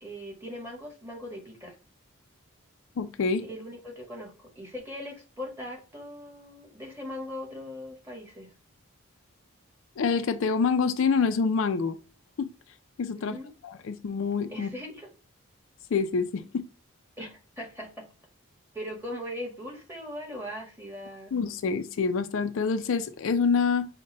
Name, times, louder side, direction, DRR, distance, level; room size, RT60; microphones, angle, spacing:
voice 1, 0.0-1.8 3.4-8.5 13.1-13.5 14.5-15.1 17.2-18.0 18.7-21.3, left 1 dB, 10° right, 1.3 m, -40 dB
voice 2, 3.0-3.4 10.0-12.0 12.4-12.5 13.0-13.4 13.6-14.7 15.9-16.4 21.3-23.9, left 5 dB, 65° left, 0.4 m, -26 dB
5.3 x 2.2 x 3.7 m
head